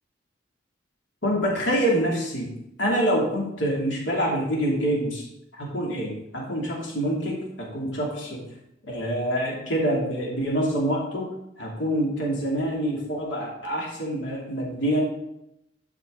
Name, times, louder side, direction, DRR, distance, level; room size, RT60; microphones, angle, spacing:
voice 1, 1.2-2.5 2.8-5.2 5.6-8.4 8.9-11.3 11.6-15.0, equal, 80° left, -3 dB, 3.1 m, -26 dB
12.0 x 5.9 x 4.0 m, 0.81 s
head